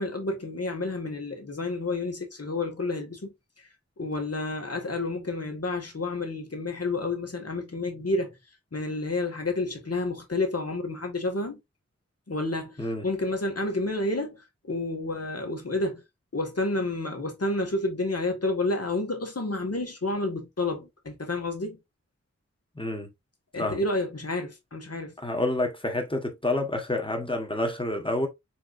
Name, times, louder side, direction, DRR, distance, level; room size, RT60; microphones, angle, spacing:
voice 1, 0.0-3.7 4.0-8.4 8.7-11.6 12.3-16.0 16.3-21.8 23.5-25.1, left 2 dB, 55° left, 1.6 m, -30 dB
voice 2, 22.7-23.1 23.6-23.8 25.2-28.3, left 1 dB, 15° left, 1.4 m, -28 dB
4.5 x 3.9 x 2.5 m
wide cardioid pair, 50°, 29 cm